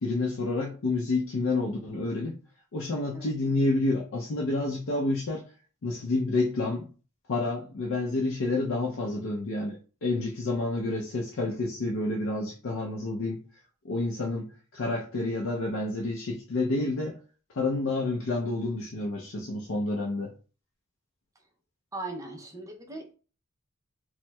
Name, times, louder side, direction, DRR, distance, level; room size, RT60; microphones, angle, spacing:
voice 1, 0.0-2.4 2.7-5.4 5.8-6.9 7.3-13.4 13.8-17.2 17.5-20.3, left 2 dB, 60° left, -1 dB, 0.5 m, -29 dB
voice 2, 21.9-23.1, right 2 dB, 15° right, 2 dB, 0.5 m, -39 dB
4.2 x 2.1 x 2.2 m, 0.37 s
head